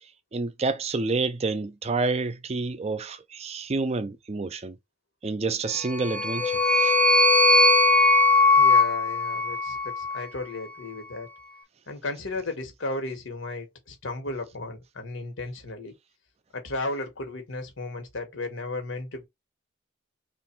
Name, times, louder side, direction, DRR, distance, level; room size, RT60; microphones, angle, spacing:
voice 1, 0.3-4.8 5.2-6.9, right 3 dB, 30° right, 0.4 m, -29 dB
sound 1, 5.9-10.2, left 2 dB, 5° left, 0.7 m, -20 dB
voice 2, 8.6-11.3 11.9-15.9 16.5-19.2, left 2 dB, 75° left, 1.3 m, -34 dB
3.4 x 2.5 x 4.4 m
head